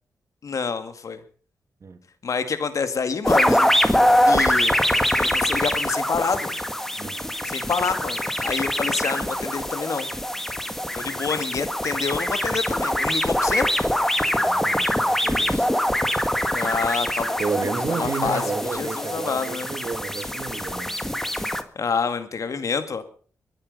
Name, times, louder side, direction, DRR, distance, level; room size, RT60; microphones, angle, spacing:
voice 1, 0.4-1.2 2.2-4.8 5.2-6.5 7.4-10.1 10.9-13.7 16.5-17.4 17.9-18.4 18.7-19.7 21.8-23.0, left 5 dB, 65° left, 2.1 m, -27 dB
sound 1, 3.2-21.6, equal, 5° left, 1.8 m, -23 dB
voice 2, 14.3-15.7 17.4-21.0, right 5 dB, 55° right, 2.5 m, -31 dB
23.5 x 9.7 x 5.5 m
cardioid pair, 55°, 6 cm